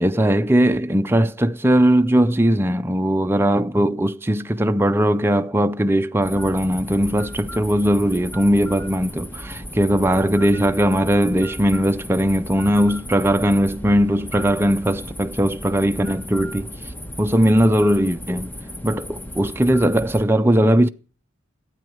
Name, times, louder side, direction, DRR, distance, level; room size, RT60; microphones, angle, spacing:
voice 1, 0.0-16.7 17.2-18.5 18.8-20.9, equal, 10° right, 0.5 m, -19 dB
sound 1, 6.2-20.2, equal, 10° left, 1.2 m, -35 dB
12.5 x 8.9 x 6.3 m
head